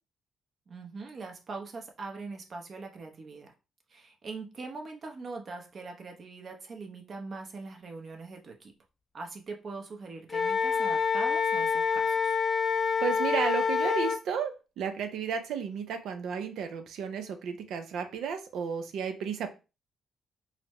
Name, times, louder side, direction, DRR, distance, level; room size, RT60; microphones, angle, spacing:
voice 1, 0.7-3.5 3.9-8.7 9.1-12.4, right 3 dB, 45° right, 2 dB, 0.8 m, -42 dB
Wind instrument woodwind instrument, 10.3-14.2, left 6 dB, 35° left, 0.4 m, -27 dB
voice 2, 13.0-19.5, right 7 dB, 80° right, 7 dB, 0.5 m, -33 dB
4.0 x 2.1 x 2.9 m, 0.30 s
cardioid pair, 90°, 0 cm